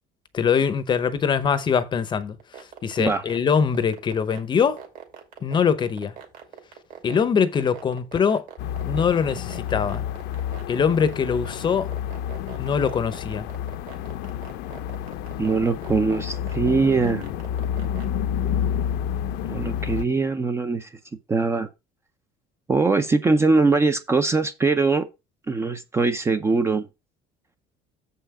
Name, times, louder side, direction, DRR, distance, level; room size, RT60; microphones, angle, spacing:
voice 1, 0.3-2.4 2.8-4.8 5.4-6.1 7.0-8.4 8.9-10.0 10.7-11.9 12.6-13.5, left 6 dB, 25° left, 0.7 m, -22 dB
sound 1, 2.4-18.0, right 9 dB, 50° right, 2.5 m, -41 dB
sound 2, 8.6-20.0, left 9 dB, 70° left, 0.8 m, -29 dB
voice 2, 15.4-17.3 19.4-20.9 21.3-21.7 22.7-25.1 25.5-26.9, right 4 dB, 15° right, 0.5 m, -22 dB
7.3 x 5.7 x 4.8 m
cardioid pair, 165°, 18 cm